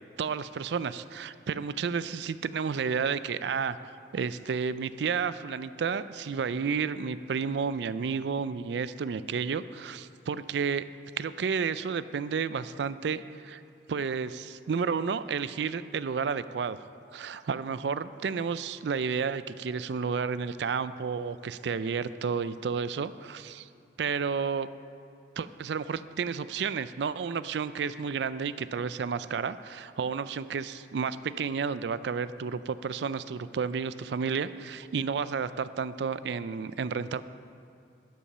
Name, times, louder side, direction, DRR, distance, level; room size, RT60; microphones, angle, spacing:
voice 1, 0.2-3.8 4.1-10.8 11.2-13.6 13.9-16.8 17.1-23.7 24.0-24.7 25.4-37.2, right 6 dB, 75° right, 14 dB, 0.4 m, -31 dB
12.0 x 7.1 x 5.6 m, 2.6 s
head